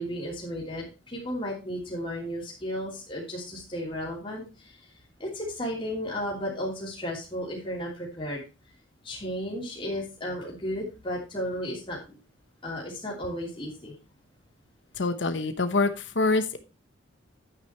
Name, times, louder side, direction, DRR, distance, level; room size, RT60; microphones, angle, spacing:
voice 1, 0.0-4.8 5.2-8.4 9.0-12.1 12.6-14.0, equal, 25° left, -3 dB, 3.0 m, -34 dB
voice 2, 15.0-16.6, left 3 dB, 65° left, 9 dB, 1.0 m, -25 dB
9.8 x 9.0 x 3.1 m, 0.30 s
head